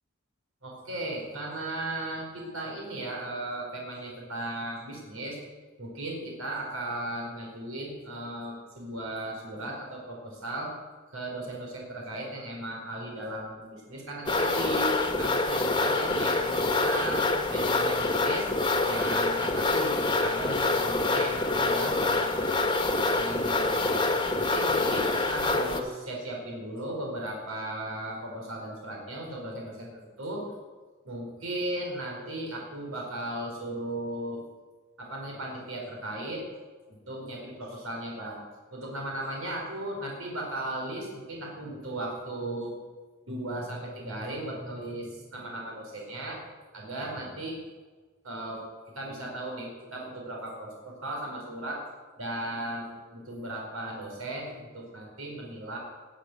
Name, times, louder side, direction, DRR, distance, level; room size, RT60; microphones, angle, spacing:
voice 1, 0.6-5.4 5.8-10.7 11.1-14.9 15.2-17.2 17.5-18.5 18.8-22.6 23.1-24.0 24.4-30.4 31.0-34.4 35.0-36.4 36.9-38.4 38.7-42.8 43.2-46.4 46.7-47.6 48.2-48.6 48.9-51.8 52.2-55.8, right 1 dB, 85° right, -1 dB, 4.6 m, -36 dB
sound 1, 14.3-25.8, left 2 dB, 20° left, 1.3 m, -26 dB
19.5 x 8.4 x 8.0 m, 1.4 s
head